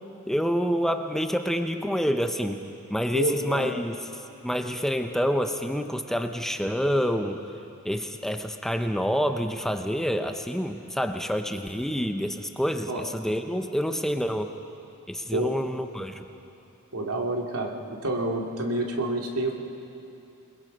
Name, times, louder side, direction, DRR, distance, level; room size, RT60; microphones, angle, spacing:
voice 1, 0.3-2.6 2.9-4.0 4.4-7.4 7.8-14.5 15.1-16.2, equal, ahead, 6 dB, 0.7 m, -27 dB
voice 2, 3.1-3.7 12.9-13.0 15.3-15.6 16.9-19.5, right 2 dB, 80° right, 1 dB, 2.5 m, -28 dB
28.0 x 21.0 x 5.4 m, 2.7 s
head